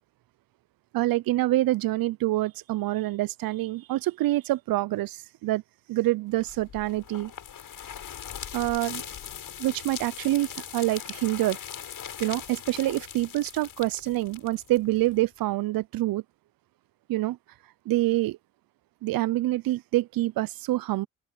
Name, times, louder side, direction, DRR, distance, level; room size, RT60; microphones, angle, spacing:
voice 1, 0.9-5.6 5.9-7.3 8.5-9.0 9.6-11.6 12.2-16.2 17.1-17.4 17.9-18.4 19.0-21.1, right 17 dB, 65° right, 0.7 m, -26 dB
sound 1, 6.4-15.2, left 9 dB, 60° left, 6.4 m, -40 dB
supercardioid pair, 60°, 38 cm